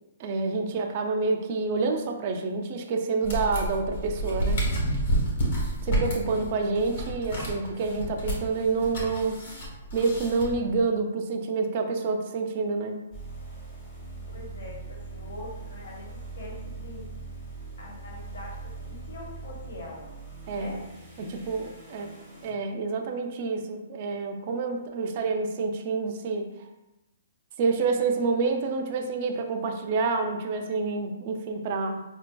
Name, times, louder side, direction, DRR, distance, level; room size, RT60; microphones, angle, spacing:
voice 1, 0.2-4.6 5.8-9.4 9.9-13.0 20.5-20.7 21.2-22.2 22.4-26.7 27.6-32.0, right 4 dB, 30° right, 3 dB, 0.3 m, -28 dB
sound 1, 3.2-10.8, right 1 dB, 40° left, 1.1 m, -30 dB
sound 2, 13.1-22.5, right 3 dB, 10° left, 0.7 m, -41 dB
voice 2, 14.3-17.1 17.8-20.1 20.5-20.8 21.9-22.2, left 1 dB, 80° left, -2 dB, 1.1 m, -43 dB
5.0 x 2.5 x 2.2 m, 0.97 s
hypercardioid pair, 175°, 0 cm